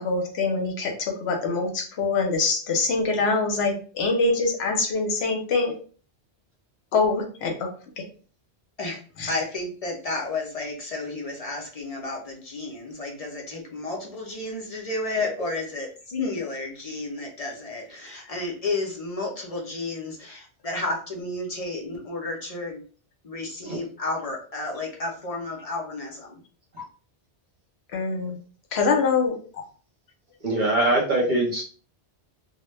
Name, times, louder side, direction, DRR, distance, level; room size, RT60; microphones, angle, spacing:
voice 1, 0.0-5.7 6.9-7.7 8.0-8.1 9.2-9.3 27.9-28.4 28.7-29.6, left 3 dB, 75° left, 3 dB, 0.9 m, -24 dB
voice 2, 9.3-22.8 23.2-26.4, left 2 dB, 45° left, -1 dB, 0.5 m, -32 dB
voice 3, 30.4-31.6, right 1 dB, 50° right, -1 dB, 0.8 m, -23 dB
2.1 x 2.1 x 3.1 m, 0.41 s
omnidirectional pair, 1.1 m